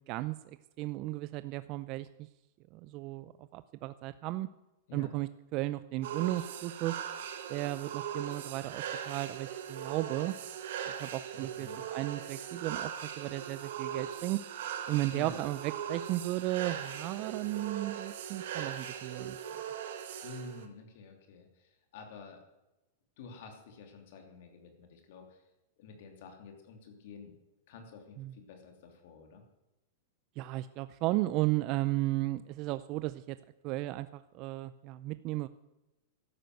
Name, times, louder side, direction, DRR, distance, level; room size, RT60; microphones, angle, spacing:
voice 1, 0.1-2.3 2.7-4.5 4.9-7.0 7.5-10.3 10.9-14.4 14.9-19.4 28.2-28.3 30.4-33.4 33.6-35.5, right 17 dB, 40° right, 14 dB, 0.5 m, -35 dB
sound 1, 6.0-20.7, right 8 dB, 70° right, 1.6 m, -40 dB
voice 2, 11.3-11.8 15.1-15.4 20.2-22.4 23.2-25.5 25.8-27.3 27.7-29.4, left 4 dB, 65° left, 4 dB, 3.0 m, -50 dB
12.5 x 10.5 x 7.7 m, 0.99 s
supercardioid pair, 145°, 0 cm